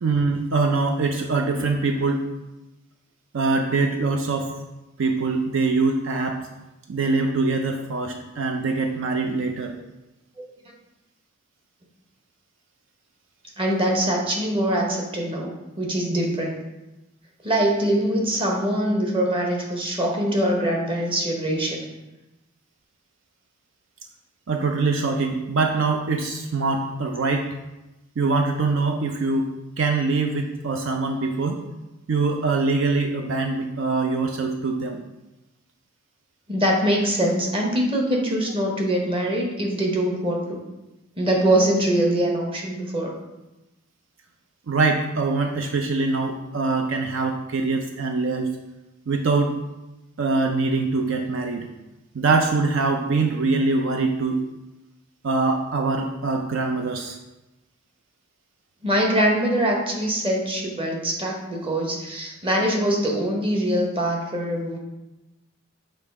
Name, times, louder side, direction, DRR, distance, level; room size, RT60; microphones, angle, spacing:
voice 1, 0.0-2.3 3.3-4.5 5.0-6.4 6.9-9.7 24.5-27.6 28.2-29.5 29.8-31.6 32.1-35.0 44.7-48.6 49.1-49.6 50.2-51.7 52.1-54.4 55.2-57.2, right 3 dB, 65° right, 4 dB, 0.5 m, -23 dB
voice 2, 13.6-16.6 17.4-21.9 36.5-40.6 41.2-43.2 58.8-64.8, right 1 dB, 25° right, -1 dB, 1.0 m, -23 dB
6.8 x 3.1 x 4.7 m, 1.0 s
head